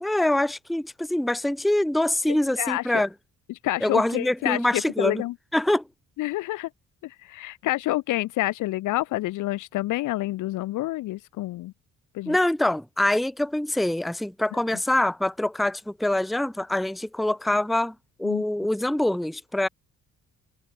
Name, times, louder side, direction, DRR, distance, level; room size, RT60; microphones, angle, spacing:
voice 1, 0.0-3.1 3.8-5.2 5.5-5.8 12.3-19.7, left 1 dB, ahead, 0.6 m, -24 dB
voice 2, 2.3-3.0 3.6-5.3 6.2-6.7 7.0-11.7 12.1-12.4 18.2-18.4, left 17 dB, 85° left, 0.9 m, -28 dB
cardioid pair, 90°, 30 cm